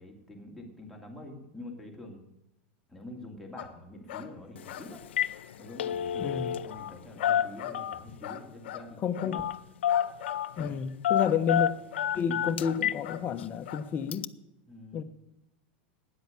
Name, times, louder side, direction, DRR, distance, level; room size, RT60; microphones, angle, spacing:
voice 1, 0.0-2.2 2.9-5.0 5.6-9.4 12.3-12.4 14.7-15.0, left 1 dB, ahead, -1 dB, 2.4 m, -46 dB
sound 1, 3.6-3.7 4.1-4.3 4.6-5.0 5.3-5.5 6.2-6.3 6.6-7.8 8.2-8.9 9.1-9.4 9.9-10.8 11.2-12.1 12.6-13.3 13.6-13.8, left 11 dB, 70° left, 1.1 m, -41 dB
Telephone, 4.6-4.7 5.0-5.4 5.6-6.9 7.2-8.2 9.3-9.6 9.8-10.5 11.0-13.0 13.4-13.5 14.1-14.3, left 10 dB, 85° left, 0.4 m, -28 dB
voice 2, 6.2-6.5 9.0-9.4 10.6-11.7 12.1-14.3 14.9-15.0, left 7 dB, 30° left, 8 dB, 1.0 m, -30 dB
9.9 x 7.8 x 8.4 m, 0.87 s
hypercardioid pair, 120°, 6 cm